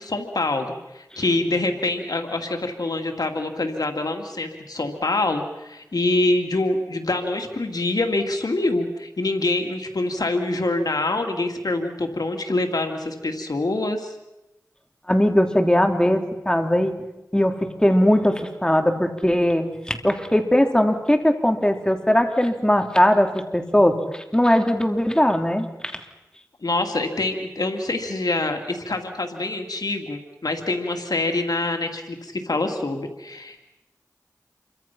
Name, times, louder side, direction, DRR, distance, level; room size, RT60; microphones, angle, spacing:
voice 1, 0.0-14.1 26.6-33.6, left 2 dB, 85° left, 5 dB, 2.3 m, -25 dB
voice 2, 15.1-16.9 17.3-25.7 25.9-26.0, equal, 10° left, 4 dB, 3.3 m, -20 dB
28.0 x 24.0 x 5.9 m, 0.96 s
wide cardioid pair, 40°, 6 cm